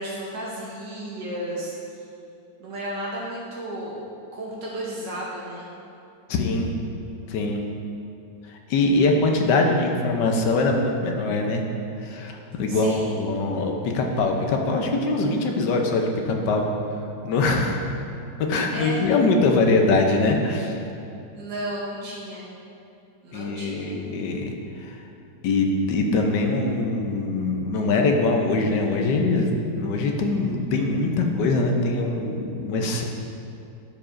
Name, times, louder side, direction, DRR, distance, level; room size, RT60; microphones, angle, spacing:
voice 1, 0.0-1.8 2.6-4.0 4.3-5.7 12.7-13.1 18.7-19.0 21.3-22.5 23.2-24.0, right 1 dB, 75° right, -5 dB, 1.5 m, -33 dB
voice 2, 6.3-6.7 7.3-7.6 8.5-11.6 12.0-16.7 17.2-17.8 18.4-20.8 23.3-24.5 24.8-25.0 25.4-33.0, left 3 dB, 75° left, 2 dB, 1.3 m, -23 dB
12.0 x 4.8 x 2.5 m, 2.6 s
omnidirectional pair, 2.0 m